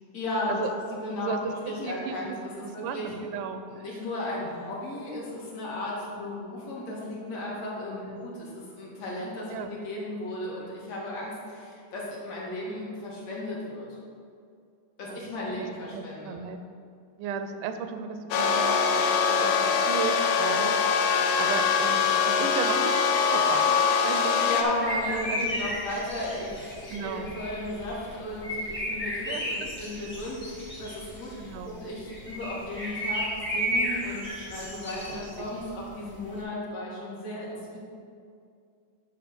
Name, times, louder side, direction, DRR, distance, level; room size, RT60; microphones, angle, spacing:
voice 1, 0.1-0.6 0.9-3.1 3.7-13.9 15.0-16.4 24.4-37.8, left 1 dB, 60° left, -5 dB, 2.7 m, -35 dB
voice 2, 1.2-2.4 2.6-3.8 6.1-6.2 8.1-8.3 9.5-9.7 12.5-12.8 15.0-15.3 15.9-16.6 17.2-24.6 25.1-25.8 26.9-27.3 29.1-30.2 31.4-31.8 34.9-35.5 37.5-37.7, right 6 dB, 90° right, 8 dB, 2.2 m, -36 dB
sound 1, 18.3-24.6, left 6 dB, 80° left, 2.1 m, -23 dB
sound 2, 24.7-36.4, equal, 10° left, 0.6 m, -34 dB
10.0 x 3.9 x 6.0 m, 2.3 s
omnidirectional pair, 3.6 m